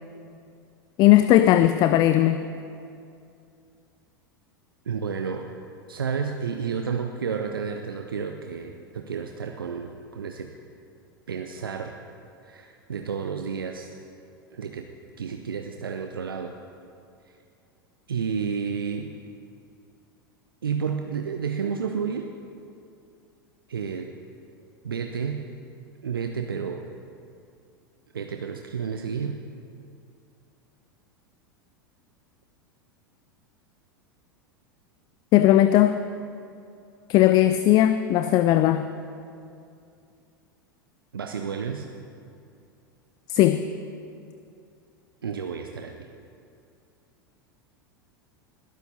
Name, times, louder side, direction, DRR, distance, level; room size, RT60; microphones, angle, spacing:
voice 1, 1.0-2.5 35.3-36.0 37.1-38.8 43.3-43.6, left 13 dB, 35° left, 11 dB, 0.5 m, -18 dB
voice 2, 4.9-5.5 5.9-10.5 11.3-11.9 12.4-13.9 14.5-14.9 15.2-16.5 18.1-19.1 20.6-22.3 23.7-24.1 24.8-25.4 26.0-26.8 28.1-29.4 41.1-41.9 45.2-46.1, right 6 dB, 70° right, 4 dB, 0.8 m, -31 dB
21.0 x 12.5 x 4.2 m, 2.5 s
figure-of-eight pair, 85°, 12 cm